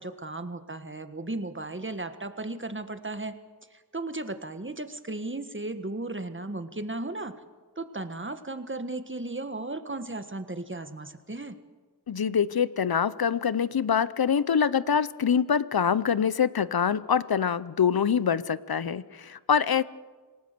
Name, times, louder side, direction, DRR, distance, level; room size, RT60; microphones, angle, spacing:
voice 1, 0.0-3.3 3.9-7.3 7.8-11.5, right 2 dB, 30° right, 9 dB, 1.5 m, -35 dB
voice 2, 12.1-19.8, left 7 dB, 65° left, 17 dB, 0.8 m, -25 dB
26.5 x 18.5 x 6.8 m, 1.4 s
wide cardioid pair, 60°, 39 cm